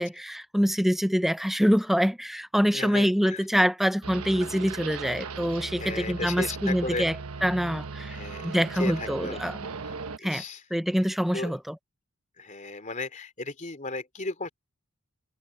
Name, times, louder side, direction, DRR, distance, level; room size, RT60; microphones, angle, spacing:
voice 1, 0.0-8.2 8.4-9.6 10.2-10.4 10.7-11.8, equal, ahead, 0.6 m, -25 dB
voice 2, 2.7-3.4 5.8-7.1 8.1-9.4 9.8-9.9 10.2-10.6 11.3-11.6 12.4-14.5, left 3 dB, 35° left, 3.3 m, -35 dB
sound 1, 4.0-10.2, right 4 dB, 85° right, 1.1 m, -38 dB
head